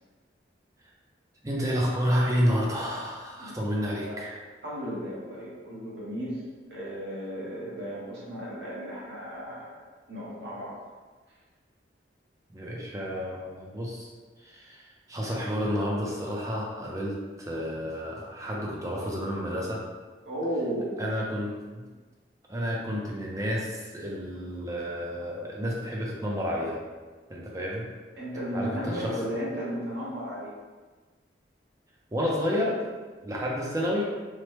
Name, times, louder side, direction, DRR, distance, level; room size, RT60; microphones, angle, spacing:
voice 1, 1.4-4.4 12.5-14.1 14.4-19.8 21.0-21.8 22.5-26.8 27.3-27.9 28.5-29.2 32.1-32.8 33.2-34.1, equal, 20° right, -3 dB, 0.4 m, -30 dB
voice 2, 3.4-4.2 4.6-6.4 6.7-9.8 10.1-10.7 20.2-21.1 28.2-30.5, equal, 80° right, -7 dB, 1.0 m, -34 dB
3.0 x 2.0 x 3.2 m, 1.3 s
head